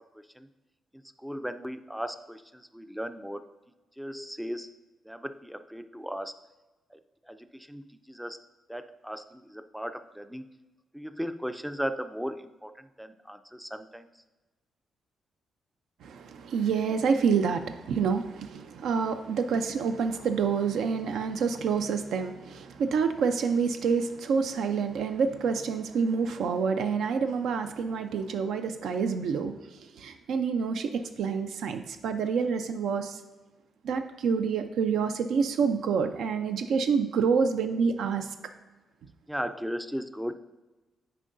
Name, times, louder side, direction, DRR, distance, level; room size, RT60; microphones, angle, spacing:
voice 1, 0.1-0.5 1.2-3.4 4.0-4.7 5.1-6.3 6.9-7.0 7.3-8.4 8.7-10.4 10.9-14.1 39.3-40.3, equal, 5° right, 9 dB, 0.3 m, -37 dB
voice 2, 16.0-33.2 33.8-38.3, right 5 dB, 85° right, 7 dB, 0.5 m, -28 dB
9.9 x 4.6 x 2.6 m, 1.2 s
cardioid pair, 130°, 0 cm